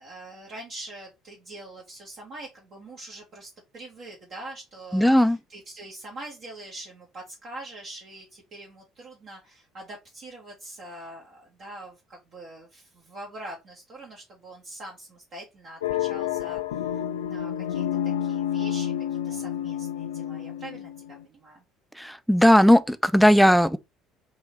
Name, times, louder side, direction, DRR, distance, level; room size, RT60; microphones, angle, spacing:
voice 1, 0.0-18.9 19.2-21.6, right 1 dB, 45° right, 1.3 m, -43 dB
voice 2, 4.9-5.4 22.0-23.8, equal, ahead, 0.4 m, -17 dB
sound 1, 15.8-21.2, left 10 dB, 75° left, 0.4 m, -29 dB
4.7 x 2.9 x 3.5 m
figure-of-eight pair, 55°, 0 cm